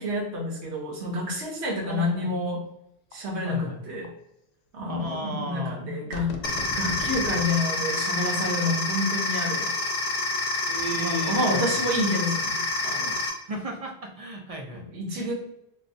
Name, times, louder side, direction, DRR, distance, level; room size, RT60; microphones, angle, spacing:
voice 1, 0.0-2.6 3.1-4.1 4.7-6.3 6.8-9.7 11.0-13.2 14.7-15.3, left 1 dB, 85° right, -1 dB, 1.1 m, -29 dB
voice 2, 1.9-2.4 3.4-3.8 4.9-5.8 6.4-6.6 10.7-11.8 13.5-14.9 15.1-15.3, right 2 dB, 50° right, 0 dB, 0.4 m, -35 dB
sound 1, 3.1-3.2 4.0-4.1 5.1-5.2 6.1-7.5 8.1-8.2, left 3 dB, 90° left, 0.9 m, -36 dB
sound 2, 6.4-13.3, left 2 dB, 50° left, 0.8 m, -28 dB
4.6 x 2.1 x 2.6 m, 0.83 s
omnidirectional pair, 1.1 m